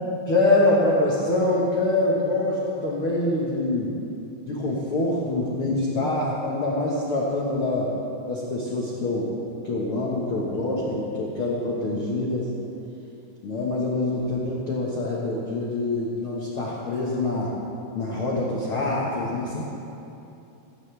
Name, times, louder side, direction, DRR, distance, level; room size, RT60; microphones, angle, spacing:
voice 1, 0.3-3.9 4.5-7.9 8.3-9.3 9.6-12.5 13.4-17.5 17.9-19.7, left 2 dB, 90° left, -4 dB, 1.1 m, -25 dB
16.5 x 16.5 x 3.4 m, 2.8 s
omnidirectional pair, 4.9 m